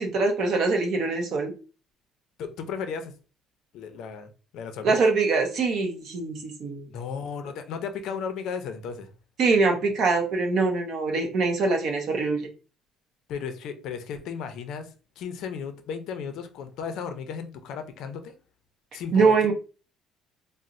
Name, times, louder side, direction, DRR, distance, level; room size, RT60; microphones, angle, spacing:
voice 1, 0.0-1.5 4.8-6.8 9.4-12.5 19.1-19.5, right 4 dB, 45° right, 3 dB, 0.7 m, -23 dB
voice 2, 2.4-3.1 3.7-5.0 6.9-9.1 13.3-18.3 18.9-19.5, left 6 dB, 55° left, 8 dB, 0.5 m, -35 dB
4.0 x 2.0 x 2.5 m, 0.35 s
cardioid pair, 170°, 0 cm